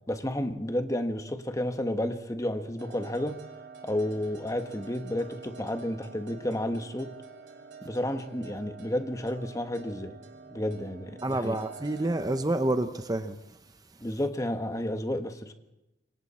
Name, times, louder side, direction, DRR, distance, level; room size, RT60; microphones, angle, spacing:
voice 1, 0.1-3.4 3.8-7.1 7.8-10.2 10.5-11.6 14.0-15.5, left 1 dB, 20° left, 7 dB, 1.4 m, -31 dB
sound 1, 2.8-12.4, right 4 dB, 70° right, 2.7 m, -47 dB
voice 2, 11.2-13.4, right 1 dB, 20° right, 9 dB, 0.8 m, -28 dB
27.0 x 24.0 x 4.3 m, 0.93 s
head